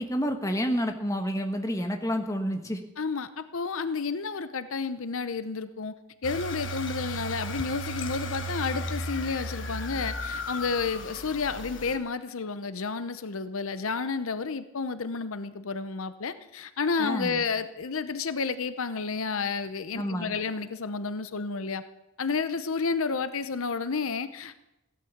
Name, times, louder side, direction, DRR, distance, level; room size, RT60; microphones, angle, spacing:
voice 1, 0.0-2.8 17.0-17.4 19.9-20.3, equal, 15° left, 5 dB, 1.4 m, -29 dB
voice 2, 3.0-5.9 6.2-21.8 22.2-24.6, left 4 dB, 75° left, 12 dB, 0.8 m, -31 dB
sound 1, 6.2-12.0, equal, 55° left, 1.5 m, -35 dB
16.0 x 12.0 x 7.3 m, 0.90 s
head